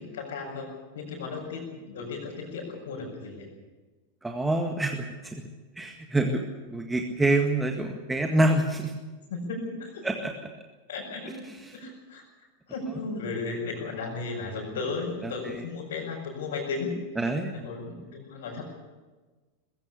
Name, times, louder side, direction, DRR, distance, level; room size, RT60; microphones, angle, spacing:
voice 1, 0.0-3.5 9.3-10.1 10.9-11.5 11.7-12.2 12.7-17.2 17.5-18.6, left 4 dB, 60° left, -4 dB, 5.5 m, -35 dB
voice 2, 4.2-5.4 5.8-8.9 10.0-10.5 15.2-15.7 17.2-17.5, right 2 dB, 10° right, 4 dB, 1.8 m, -27 dB
21.0 x 16.0 x 8.4 m, 1.3 s
figure-of-eight pair, 90°, 0 cm